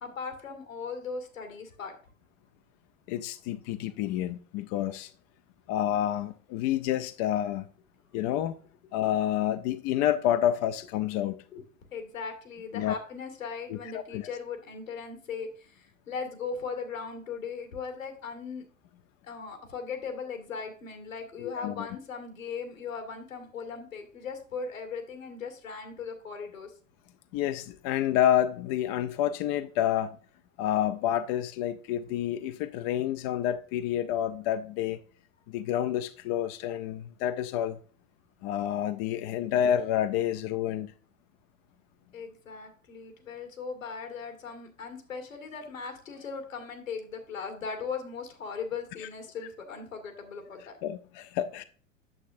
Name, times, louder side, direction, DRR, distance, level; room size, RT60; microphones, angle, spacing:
voice 1, 0.0-1.9 11.5-11.6 11.9-18.6 19.2-26.7 42.1-50.8, left 5 dB, 75° left, 2.0 m, -38 dB
voice 2, 3.1-5.1 5.7-7.7 8.1-8.6 8.9-11.4 12.7-12.9 13.7-13.8 14.1-14.3 21.4-21.9 27.3-30.2 30.6-35.0 35.5-37.8 38.4-40.9 50.8-51.6, left 11 dB, 30° left, 0.4 m, -29 dB
8.6 x 7.3 x 2.5 m
figure-of-eight pair, 95°, 39 cm